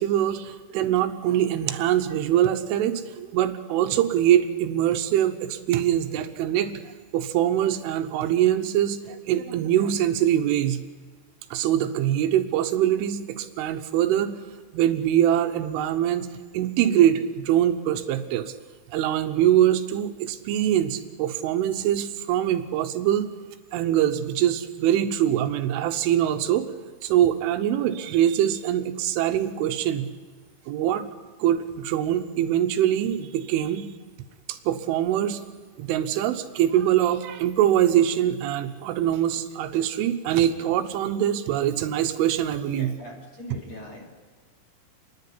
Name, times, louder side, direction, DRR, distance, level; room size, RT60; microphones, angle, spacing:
voice 1, 0.0-6.8 7.1-10.8 11.5-14.4 14.7-16.3 16.5-18.5 18.9-23.3 23.7-26.7 27.0-30.1 30.7-31.1 31.4-33.9 34.5-35.4 35.8-43.0, right 11 dB, 80° right, 8 dB, 3.4 m, -23 dB
voice 2, 42.7-44.1, left 2 dB, 40° left, -1 dB, 3.4 m, -40 dB
30.0 x 10.5 x 9.9 m, 1.4 s
omnidirectional pair, 5.6 m